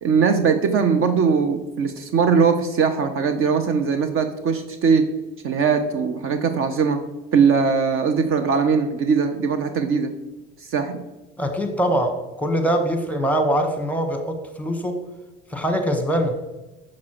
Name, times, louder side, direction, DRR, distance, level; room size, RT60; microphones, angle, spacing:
voice 1, 0.0-5.1 5.4-7.0 7.3-10.1 10.6-11.0, right 5 dB, 45° right, 8 dB, 0.6 m, -20 dB
voice 2, 11.4-15.0 15.5-16.4, equal, 5° left, 6 dB, 1.1 m, -23 dB
6.2 x 6.0 x 2.9 m, 1.1 s
hypercardioid pair, 75°, 30 cm